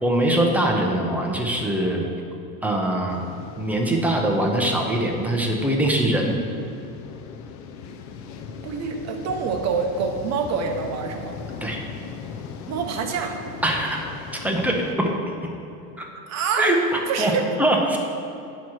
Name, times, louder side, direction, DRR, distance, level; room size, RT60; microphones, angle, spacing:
voice 1, 0.0-2.1 2.6-3.2 3.6-6.4 11.6-11.8 13.6-14.1 14.3-15.1 15.4-15.5 16.0-16.1 16.6-17.3 17.6-18.0, right 1 dB, 5° right, 0 dB, 0.7 m, -22 dB
sound 1, 3.1-14.9, left 6 dB, 40° left, 0.5 m, -39 dB
voice 2, 8.6-11.3 12.7-13.4 16.3-16.7 17.1-17.5, right 5 dB, 35° right, 4 dB, 0.9 m, -26 dB
9.2 x 3.2 x 5.8 m, 2.7 s
supercardioid pair, 125°, 48 cm